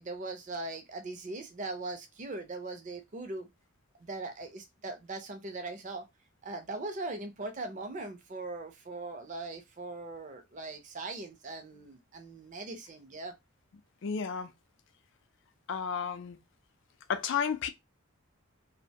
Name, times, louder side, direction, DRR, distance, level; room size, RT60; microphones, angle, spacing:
voice 1, 0.0-3.5 4.0-6.0 6.4-13.3, right 2 dB, 35° right, 0.5 m, -40 dB
voice 2, 14.0-14.5 15.7-16.4 17.1-17.7, left 6 dB, 55° left, 0.4 m, -32 dB
2.4 x 2.1 x 2.7 m
head